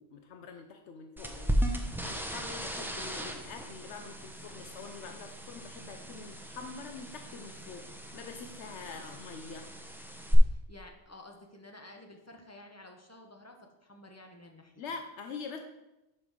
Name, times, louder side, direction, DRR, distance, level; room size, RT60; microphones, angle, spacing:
voice 1, 0.0-9.7 14.8-15.6, left 5 dB, 75° left, 5 dB, 0.9 m, -45 dB
sound 1, 1.2-10.3, equal, 5° right, 0.4 m, -37 dB
voice 2, 10.5-14.7, left 1 dB, 15° left, 2 dB, 0.8 m, -52 dB
5.6 x 5.2 x 6.2 m, 0.96 s
omnidirectional pair, 1.2 m